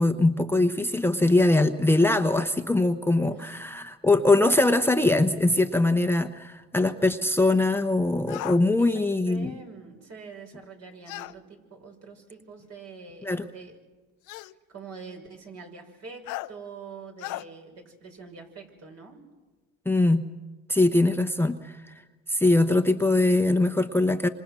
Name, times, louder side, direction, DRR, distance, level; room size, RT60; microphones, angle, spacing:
voice 1, 0.0-9.5 13.2-13.5 19.9-20.3 20.7-21.8 22.3-24.3, left 2 dB, 5° left, 6 dB, 0.9 m, -22 dB
sound 1, 8.3-8.6 11.1-11.3 12.6-12.7 14.3-14.5 16.3-16.5 17.2-17.4, left 17 dB, 80° left, 0.7 m, -35 dB
voice 2, 9.3-13.8 14.4-19.2, right 4 dB, 55° right, 2 dB, 5.9 m, -45 dB
27.0 x 26.0 x 6.2 m, 1.3 s
supercardioid pair, 95°, 31 cm